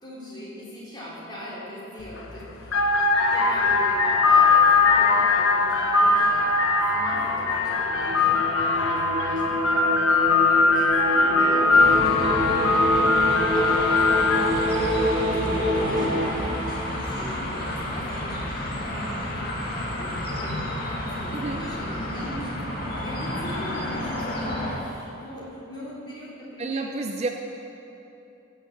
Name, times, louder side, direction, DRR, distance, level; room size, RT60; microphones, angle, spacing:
voice 1, 0.0-2.8 3.3-6.6 6.9-18.5 18.8-26.9, equal, 20° left, -7 dB, 3.4 m, -40 dB
sound 1, 2.0-2.2 2.6-14.7, left 3 dB, 90° left, 1.0 m, -21 dB
sound 2, 7.9-16.3, equal, 60° right, 2.5 m, -27 dB
sound 3, 11.7-24.8, left 1 dB, 50° left, 1.9 m, -30 dB
voice 2, 21.3-21.6 26.6-27.3, right 3 dB, 30° right, 4 dB, 0.5 m, -30 dB
15.0 x 6.5 x 7.4 m, 2.9 s
head